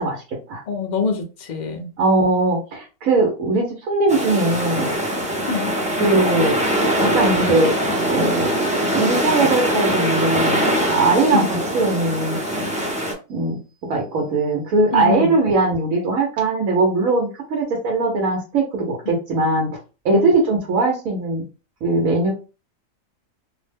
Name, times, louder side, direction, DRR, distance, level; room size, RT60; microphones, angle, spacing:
voice 1, 0.0-0.6 2.0-4.9 6.0-6.6 7.0-7.7 8.1-8.6 8.9-10.6 10.9-12.7 13.3-19.7 20.0-21.4 21.8-22.3, right 3 dB, 85° right, 1.2 m, -20 dB
voice 2, 0.7-1.9 5.5-5.7 11.3-11.5 14.9-15.4 19.1-19.2 20.1-20.2, left 5 dB, 50° left, 0.6 m, -24 dB
sound 1, 4.1-13.1, equal, 10° right, 0.3 m, -22 dB
2.8 x 2.1 x 3.3 m
omnidirectional pair, 1.4 m